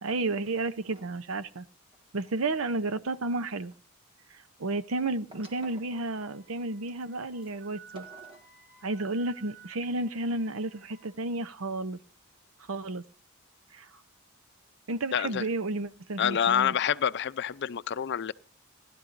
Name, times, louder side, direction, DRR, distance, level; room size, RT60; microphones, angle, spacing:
voice 1, 0.0-1.6 2.1-3.7 4.6-8.1 8.8-12.0 12.7-13.0 13.7-13.9 14.9-16.7, right 2 dB, 75° right, 0.7 m, -32 dB
sound 1, 0.8-1.2 1.9-3.8 5.3-6.4 7.0-7.1 7.4-7.5 7.9-8.6, right 1 dB, 25° right, 1.7 m, -53 dB
Wind instrument woodwind instrument, 5.3-11.1, right 7 dB, 55° right, 4.1 m, -55 dB
voice 2, 15.1-15.4 16.2-18.3, left 8 dB, 55° left, 0.5 m, -27 dB
18.5 x 12.0 x 2.6 m
head